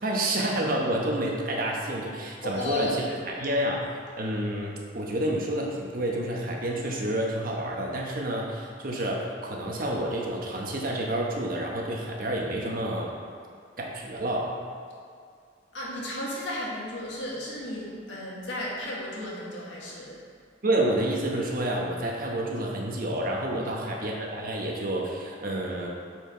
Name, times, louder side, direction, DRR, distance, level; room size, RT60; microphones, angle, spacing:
voice 1, 0.0-3.8 4.2-13.1 13.8-14.5 20.6-25.9, right 1 dB, 50° right, -1 dB, 1.1 m, -29 dB
voice 2, 2.4-3.3 15.7-20.1 23.5-23.7, left 1 dB, 75° left, -5 dB, 1.8 m, -34 dB
8.7 x 4.8 x 3.8 m, 2.3 s
head